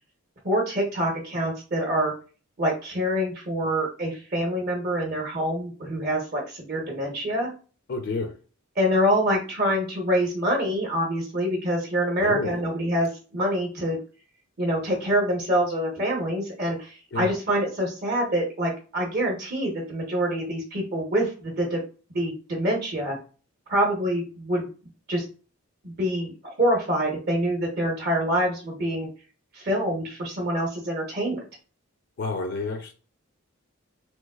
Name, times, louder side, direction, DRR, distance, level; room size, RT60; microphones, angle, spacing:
voice 1, 0.4-2.1 2.6-7.5 8.8-14.0 14.6-21.8 22.1-23.2 23.7-24.7 25.1-25.2 25.8-29.1 29.5-31.4, equal, 45° right, -1 dB, 0.8 m, -26 dB
voice 2, 7.9-8.3 12.2-12.6 17.1-17.3 32.2-32.9, left 3 dB, 50° left, 5 dB, 0.4 m, -29 dB
3.2 x 3.0 x 2.2 m, 0.36 s
head